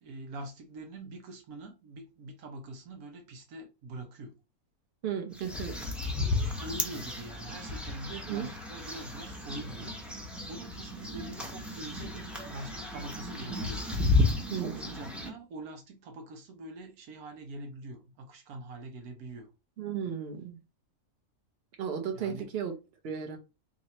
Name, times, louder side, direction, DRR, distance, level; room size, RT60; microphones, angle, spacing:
voice 1, 0.0-4.3 6.4-13.8 14.5-19.5 22.1-22.5, right 2 dB, 80° right, 1.4 m, -44 dB
voice 2, 5.0-5.8 8.1-8.5 14.5-14.8 19.8-20.6 21.8-22.7 23.0-23.4, right 8 dB, 50° right, 1.0 m, -34 dB
sound 1, 5.3-15.3, left 2 dB, ahead, 0.3 m, -33 dB
3.1 x 2.6 x 4.1 m
omnidirectional pair, 1.5 m